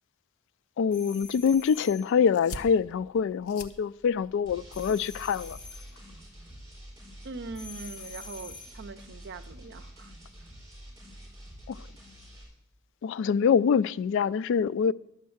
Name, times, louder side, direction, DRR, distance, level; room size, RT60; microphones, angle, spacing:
voice 1, 0.8-5.6 11.7-11.8 13.0-14.9, left 6 dB, 60° left, 0.3 m, -25 dB
sound 1, 0.9-2.1 4.7-5.9 7.5-8.8, left 4 dB, 35° left, 2.7 m, -45 dB
sound 2, 1.2-6.2, left 2 dB, 85° left, 0.9 m, -47 dB
sound 3, 4.5-12.4, equal, 15° right, 4.2 m, -47 dB
voice 2, 7.2-10.2, right 4 dB, 55° right, 0.6 m, -42 dB
11.5 x 6.5 x 7.8 m
head